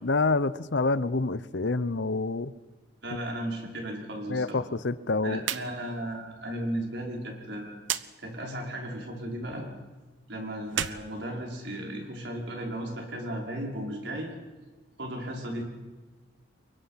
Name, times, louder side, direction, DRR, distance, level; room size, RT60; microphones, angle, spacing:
voice 1, 0.0-2.5 4.3-5.4, left 3 dB, 70° left, 15 dB, 0.8 m, -27 dB
voice 2, 3.0-4.6 5.2-7.8 8.2-9.6 10.3-14.3 15.0-15.6, right 1 dB, 70° right, 0 dB, 5.5 m, -35 dB
sound 1, 5.4-5.7 6.0-6.1 7.8-8.1 10.6-11.9, right 9 dB, 85° right, 0.9 m, -33 dB
29.0 x 24.0 x 5.9 m, 1.3 s
head